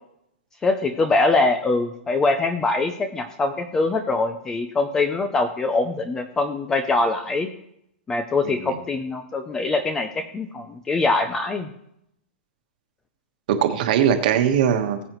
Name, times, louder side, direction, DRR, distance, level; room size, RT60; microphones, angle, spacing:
voice 1, 0.6-7.5 8.1-11.7, left 3 dB, 10° left, 9 dB, 0.4 m, -23 dB
voice 2, 8.4-8.8 13.5-15.1, right 9 dB, 40° right, 6 dB, 1.3 m, -21 dB
19.5 x 8.0 x 3.0 m, 0.76 s
supercardioid pair, 180°, 6 cm